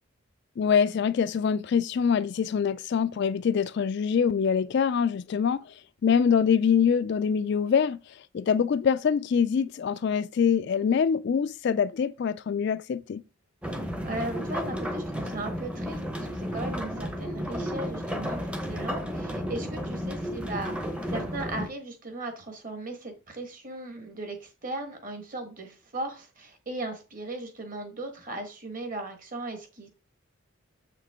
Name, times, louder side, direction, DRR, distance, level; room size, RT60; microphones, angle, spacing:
voice 1, 0.6-13.2, left 7 dB, 50° left, 0.3 m, -25 dB
sound 1, 13.6-21.7, equal, 5° right, 0.7 m, -33 dB
voice 2, 14.0-29.9, right 2 dB, 40° right, 1.4 m, -37 dB
7.3 x 5.7 x 3.5 m
head